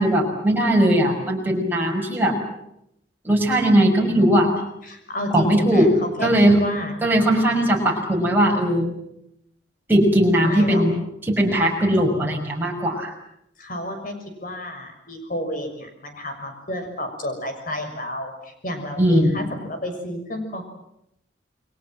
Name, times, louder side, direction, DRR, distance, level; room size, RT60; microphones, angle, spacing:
voice 1, 0.0-2.4 3.2-4.5 5.3-5.9 6.2-6.6 7.0-8.9 9.9-13.1 19.0-19.4, right 1 dB, 10° right, 0 dB, 5.9 m, -19 dB
voice 2, 4.8-6.3 6.6-6.9 10.4-10.8 13.6-14.1 14.4-20.6, left 1 dB, 45° left, 5 dB, 6.5 m, -31 dB
29.5 x 22.5 x 7.8 m, 0.80 s
head